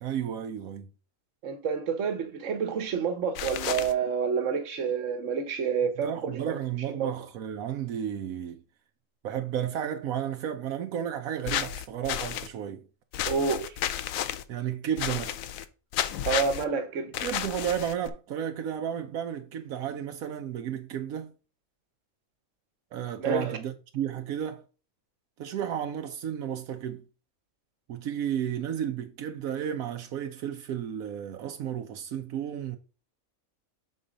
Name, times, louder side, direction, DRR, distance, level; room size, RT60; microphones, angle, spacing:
voice 1, 0.0-0.9 6.0-8.6 9.2-12.8 14.5-15.4 17.2-21.3 22.9-24.6 25.4-27.0 27.9-32.8, right 9 dB, 85° right, 1.1 m, -33 dB
voice 2, 1.4-6.5 7.0-7.1 13.2-13.8 16.2-17.1 23.2-23.6, right 6 dB, 65° right, 1.3 m, -28 dB
sound 1, 3.3-3.9 11.5-12.5 13.1-14.4 15.0-15.7 15.9-16.6 17.1-18.1, left 11 dB, 80° left, 1.0 m, -32 dB
6.3 x 4.0 x 5.0 m
omnidirectional pair, 1.5 m